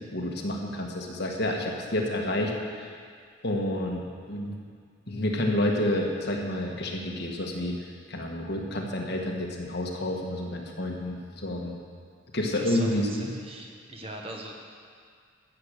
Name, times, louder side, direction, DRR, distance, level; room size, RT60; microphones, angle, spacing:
voice 1, 0.1-2.9 3.4-4.6 5.1-7.7 8.1-11.8 12.3-13.3, left 1 dB, 55° left, 0 dB, 1.6 m, -29 dB
voice 2, 12.6-14.5, right 1 dB, 30° right, 1 dB, 1.2 m, -40 dB
14.0 x 7.6 x 6.7 m, 2.1 s
head